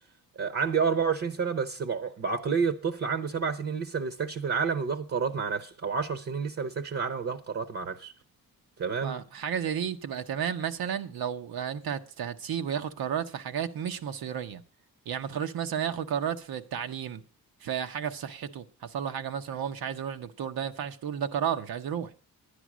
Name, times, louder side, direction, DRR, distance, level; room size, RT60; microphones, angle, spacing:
voice 1, 0.4-8.1 8.8-9.2, right 5 dB, 45° right, 0.8 m, -29 dB
voice 2, 9.0-14.6 15.1-17.2 17.6-22.1, right 8 dB, 85° right, 1.0 m, -32 dB
11.0 x 9.9 x 6.1 m
wide cardioid pair, 135°, 35 cm